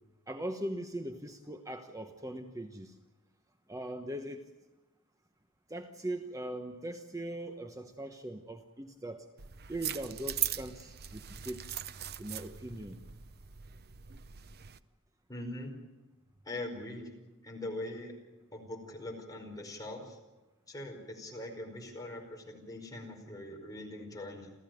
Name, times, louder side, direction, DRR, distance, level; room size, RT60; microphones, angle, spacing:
voice 1, 0.3-3.0 3.7-4.5 5.7-9.3 9.7-11.7 12.2-13.0, right 1 dB, 15° right, 6 dB, 1.0 m, -40 dB
sound 1, 9.4-14.8, right 10 dB, 45° right, 0.7 m, -40 dB
voice 2, 15.3-15.7 16.4-17.1 17.4-18.2 18.5-20.2 20.7-24.5, left 1 dB, 15° left, 1 dB, 4.9 m, -42 dB
29.0 x 14.5 x 9.2 m, 1.1 s
head